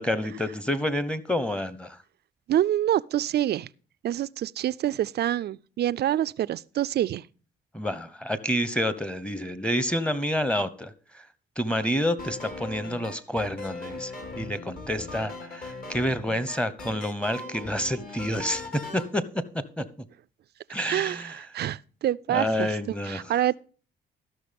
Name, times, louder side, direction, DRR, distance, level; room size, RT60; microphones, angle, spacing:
voice 1, 0.0-2.0 7.7-11.2 11.6-18.6 18.9-19.4 19.8-19.9 20.7-21.4 22.3-23.2, left 1 dB, 5° left, 1.0 m, -28 dB
voice 2, 2.5-3.7 4.0-7.2 20.9-22.7 23.0-23.6, right 12 dB, 55° right, 0.4 m, -26 dB
sound 1, 12.2-19.1, left 3 dB, 45° left, 2.5 m, -39 dB
13.5 x 6.1 x 5.2 m
cardioid pair, 90°, 20 cm